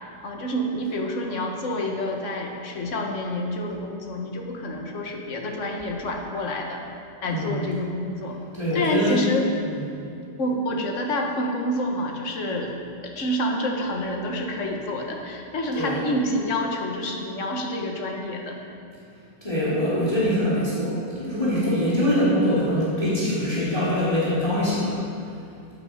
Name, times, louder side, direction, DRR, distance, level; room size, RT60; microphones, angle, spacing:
voice 1, 0.2-6.8 7.2-8.4 8.7-9.5 10.4-12.7 13.0-18.6, left 1 dB, 45° left, 1 dB, 1.6 m, -28 dB
voice 2, 7.2-7.6 8.5-9.1 9.6-9.8 15.7-16.0 19.4-25.0, equal, 20° left, -9 dB, 2.9 m, -23 dB
14.0 x 8.7 x 5.1 m, 2.5 s
omnidirectional pair, 1.9 m